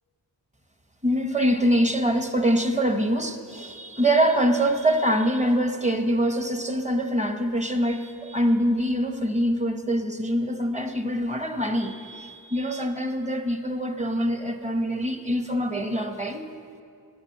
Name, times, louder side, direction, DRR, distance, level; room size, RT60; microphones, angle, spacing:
voice 1, 1.0-16.5, equal, 15° right, 6 dB, 0.9 m, -24 dB
12.5 x 8.0 x 9.3 m, 2.4 s
wide cardioid pair, 130°, 44 cm